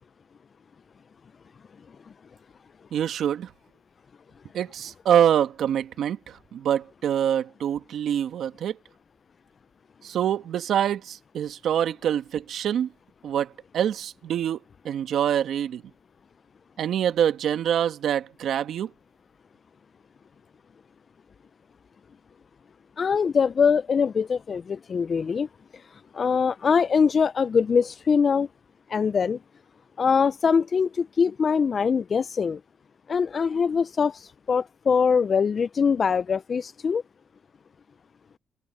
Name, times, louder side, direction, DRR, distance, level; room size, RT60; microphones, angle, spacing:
voice 1, 2.9-3.5 4.5-8.8 10.0-12.9 13.2-14.6 14.8-15.8 16.8-18.9, right 9 dB, 70° right, 1.4 m, -25 dB
voice 2, 23.0-25.5 26.1-28.5 28.9-29.4 30.0-32.6 33.1-37.0, left 6 dB, 45° left, 0.4 m, -23 dB
cardioid pair, 90°, 0 cm